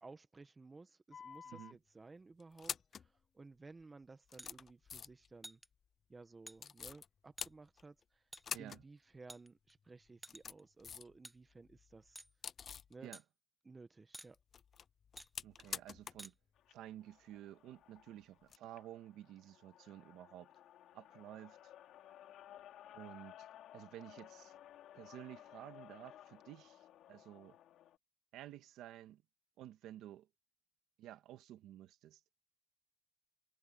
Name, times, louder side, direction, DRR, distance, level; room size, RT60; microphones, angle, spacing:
voice 1, 0.0-5.6 6.1-8.2 8.6-12.2 12.9-13.1 13.6-14.4, right 3 dB, 25° right, 1.5 m, -57 dB
sound 1, 1.1-1.7 2.4-3.1 3.8-3.9 4.3-5.3 6.6-7.1 7.4-8.0 8.4-8.8 9.1-9.2 10.1-11.2 11.5-12.9 14.3-16.3 16.6-16.7 18.4-18.6, left 7 dB, 50° left, 0.4 m, -47 dB
voice 2, 1.4-1.8 8.5-8.8 13.0-13.2 15.4-16.3 16.7-20.5 20.9-21.7 22.1-22.2 22.9-23.5 23.7-24.5 24.9-27.6 28.3-29.2 29.6-30.3 31.0-32.2, right 13 dB, 90° right, 1.6 m, -53 dB
sound 2, 4.4-4.5 5.4-5.7 6.5-6.6 7.4-7.5 8.3-8.4 9.3-9.7 10.2-10.6 11.2-11.4 12.1-12.3 13.1-13.2 14.1-14.3 15.2-15.3 16.2-16.3, right 1 dB, 5° right, 1.0 m, -52 dB
sound 3, 16.6-28.0, left 12 dB, 85° left, 2.8 m, -58 dB
cardioid pair, 90°, 0 cm